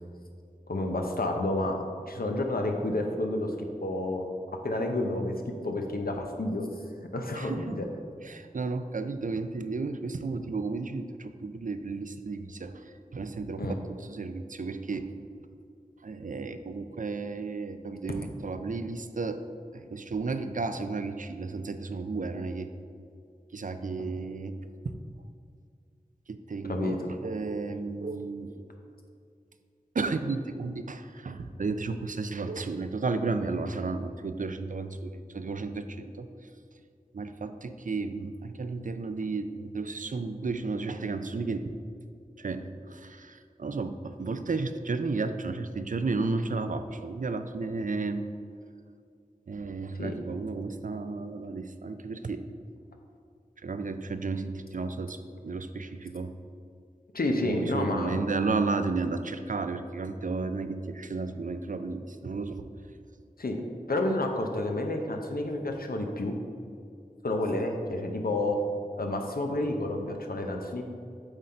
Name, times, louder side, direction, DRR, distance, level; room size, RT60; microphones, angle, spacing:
voice 1, 0.7-1.8 2.1-3.5 3.8-4.2 4.6-5.3 5.6-6.7 7.1-7.8 13.6-13.7 26.7-27.0 50.0-50.1 57.1-58.2 63.4-63.6 63.9-66.4 67.2-68.6 69.0-70.8, left 2 dB, 85° left, 3 dB, 0.7 m, -29 dB
voice 2, 7.3-7.8 8.2-15.1 16.0-19.4 19.7-22.7 23.5-24.6 24.8-25.0 26.3-28.6 29.9-36.3 37.1-41.7 42.4-48.2 49.5-52.4 53.6-56.3 57.4-62.7, right 3 dB, 60° right, 9 dB, 0.4 m, -33 dB
8.0 x 3.9 x 4.3 m, 2.4 s
wide cardioid pair, 45°, 15 cm